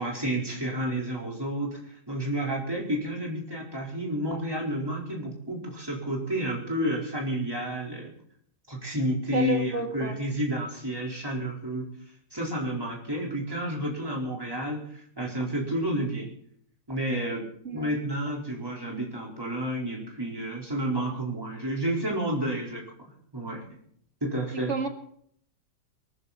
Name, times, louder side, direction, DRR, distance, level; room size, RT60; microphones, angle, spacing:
voice 1, 0.0-8.1 8.7-11.9 12.3-16.3 16.9-17.4 17.7-23.6 24.2-24.7, right 1 dB, 10° right, -2 dB, 4.4 m, -30 dB
voice 2, 9.3-10.2 17.6-17.9 24.7-24.9, right 5 dB, 40° right, 4 dB, 2.1 m, -30 dB
23.0 x 14.0 x 4.3 m, 0.65 s
omnidirectional pair, 1.9 m